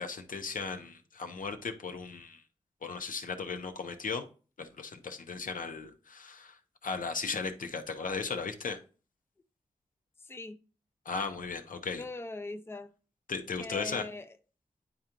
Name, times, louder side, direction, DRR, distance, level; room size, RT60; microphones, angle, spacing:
voice 1, 0.0-2.4 2.8-4.3 4.6-8.8 11.0-12.0 13.3-14.0, left 5 dB, 80° left, 0.8 m, -36 dB
voice 2, 10.2-10.6 12.0-12.9 13.6-14.4, left 2 dB, 15° left, 0.5 m, -41 dB
9.7 x 3.8 x 3.0 m
cardioid pair, 55°, 14 cm